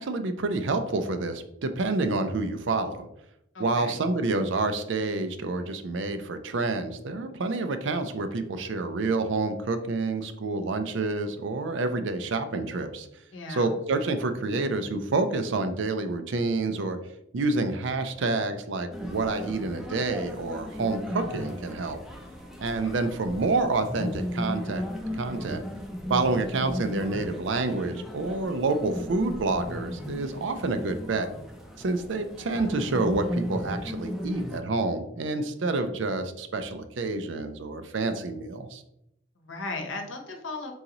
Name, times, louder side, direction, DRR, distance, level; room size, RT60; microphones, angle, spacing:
voice 1, 0.0-3.1 3.6-13.1 13.5-17.0 17.3-22.0 22.6-24.8 25.1-25.6 26.1-31.3 31.8-38.8, right 3 dB, 70° right, 9 dB, 0.5 m, -28 dB
voice 2, 3.5-4.0 13.3-13.7 22.8-22.9 39.4-40.7, left 3 dB, 75° left, 4 dB, 0.8 m, -36 dB
sound 1, 18.9-34.6, equal, ahead, 0.5 m, -36 dB
3.9 x 3.8 x 2.9 m, 0.80 s
head